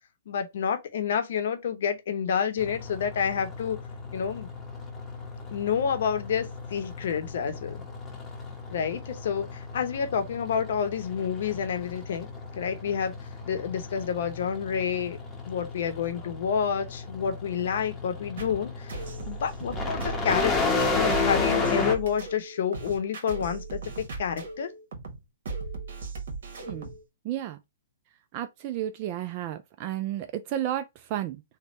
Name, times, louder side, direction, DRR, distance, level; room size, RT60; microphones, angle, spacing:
voice 1, 0.3-3.8 4.1-4.5 5.5-7.8 8.7-12.3 12.6-13.1 13.5-15.2 15.4-19.0 19.3-24.7, left 7 dB, 65° left, 0.7 m, -29 dB
sound 1, 2.6-21.9, left 3 dB, 15° left, 0.8 m, -33 dB
sound 2, 18.4-27.0, right 3 dB, 65° right, 1.1 m, -38 dB
voice 2, 27.2-27.6 28.3-31.4, right 12 dB, 40° right, 0.3 m, -32 dB
3.2 x 2.2 x 3.9 m
hypercardioid pair, 130°, 0 cm